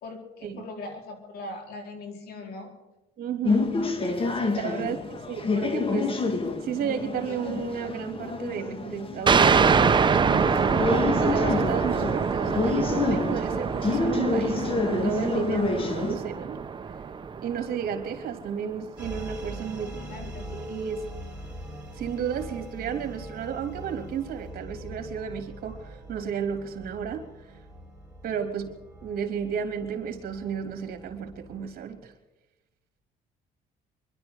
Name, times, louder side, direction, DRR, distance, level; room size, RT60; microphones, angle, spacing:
voice 1, 0.0-2.7 4.2-4.9 19.8-20.4, left 2 dB, 70° left, 4.4 m, -40 dB
voice 2, 3.2-3.7 4.4-5.0 5.3-6.2 6.6-10.6 11.0-16.6 17.4-20.0 20.5-21.1 21.9-27.2 28.2-28.7 29.0-32.1, right 7 dB, 60° right, 3.3 m, -32 dB
sound 1, 3.4-16.2, left 3 dB, 30° left, 2.1 m, -28 dB
sound 2, 9.3-18.5, right 6 dB, 30° right, 1.0 m, -25 dB
sound 3, 19.0-32.0, right 1 dB, 5° right, 4.7 m, -42 dB
25.0 x 12.0 x 4.9 m
cardioid pair, 110°, 17 cm